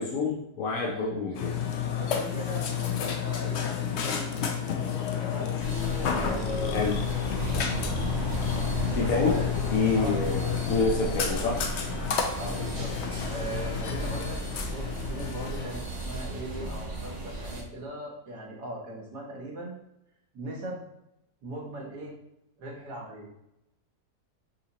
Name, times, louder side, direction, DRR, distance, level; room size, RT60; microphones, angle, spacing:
voice 1, 0.0-1.6 6.1-6.4 6.7-7.0 8.9-9.4 9.7-11.6, left 4 dB, 65° left, -3 dB, 1.0 m, -27 dB
Burping eructation, 1.3-15.8, left 8 dB, 80° left, 0.6 m, -31 dB
voice 2, 1.8-4.8 5.2-5.5 6.2-6.9 7.6-7.9 9.0-9.5 9.9-10.9 12.4-12.9 13.3-14.4 14.7-19.7 20.3-20.8 21.4-22.1 22.6-23.3, right 1 dB, 85° right, -2 dB, 1.7 m, -39 dB
sound 1, 5.6-17.6, right 2 dB, 35° right, 0.7 m, -35 dB
5.6 x 2.7 x 2.9 m, 0.84 s
omnidirectional pair, 1.7 m